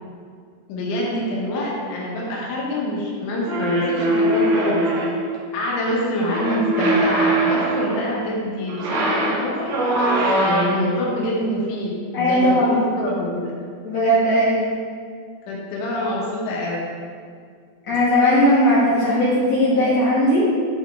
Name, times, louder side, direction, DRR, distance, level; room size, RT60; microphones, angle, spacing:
voice 1, 0.7-4.9 5.5-13.5 15.5-16.8, left 1 dB, 90° left, -4 dB, 3.6 m, -26 dB
sound 1, 3.4-5.3 6.3-8.1 8.7-11.0, right 1 dB, 75° right, 3.2 m, -21 dB
voice 2, 12.1-12.8 13.8-14.7 17.9-20.4, equal, 50° left, -11 dB, 2.1 m, -18 dB
9.9 x 3.8 x 3.6 m, 2.1 s
omnidirectional pair, 5.3 m